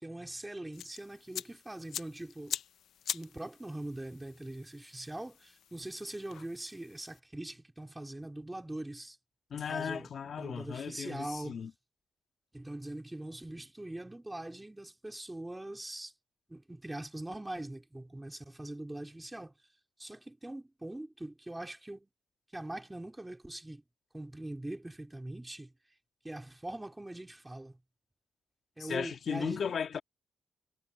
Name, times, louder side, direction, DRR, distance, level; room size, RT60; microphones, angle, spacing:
voice 1, 0.0-2.6 3.1-9.2 9.5-11.6 12.5-16.1 16.5-19.5 20.0-22.1 22.5-23.8 24.1-25.7 26.2-27.8 28.8-29.7, right 1 dB, 10° right, 4.2 m, -42 dB
sound 1, 0.7-7.2, left 9 dB, 70° left, 0.8 m, -44 dB
voice 2, 9.5-11.7 28.8-30.0, left 7 dB, 50° left, 1.8 m, -36 dB
cardioid pair, 130°, 0 cm